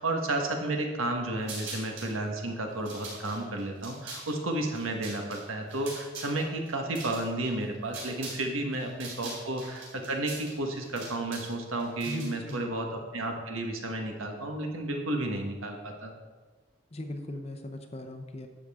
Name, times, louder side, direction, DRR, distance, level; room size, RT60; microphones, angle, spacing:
voice 1, 0.0-16.1, right 2 dB, 85° right, 3 dB, 1.4 m, -32 dB
sound 1, 1.4-2.1 2.7-8.5 8.7-12.5, right 3 dB, 60° right, 3.3 m, -43 dB
voice 2, 12.0-12.7 16.9-18.5, left 1 dB, 30° left, 6 dB, 0.7 m, -38 dB
11.5 x 7.3 x 3.6 m, 1.4 s
head